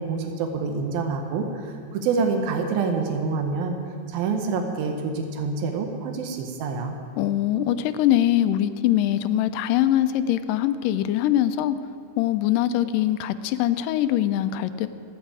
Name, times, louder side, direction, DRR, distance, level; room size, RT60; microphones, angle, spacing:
voice 1, 0.0-3.8 4.1-7.0, right 4 dB, 90° right, 4 dB, 2.9 m, -27 dB
voice 2, 7.2-11.8 12.2-14.9, left 12 dB, 80° left, 11 dB, 2.1 m, -22 dB
26.0 x 9.1 x 4.9 m, 2.2 s
omnidirectional pair, 4.1 m